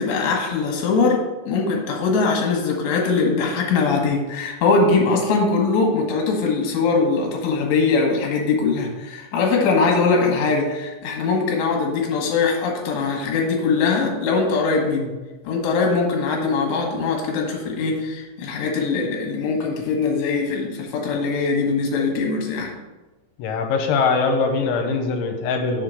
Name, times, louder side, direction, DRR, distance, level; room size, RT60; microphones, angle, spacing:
voice 1, 0.0-15.1 15.4-22.7, left 4 dB, 70° left, 0 dB, 3.2 m, -21 dB
voice 2, 23.4-25.8, left 4 dB, 90° left, 4 dB, 3.1 m, -22 dB
7.3 x 3.7 x 6.3 m, 1.2 s
omnidirectional pair, 5.5 m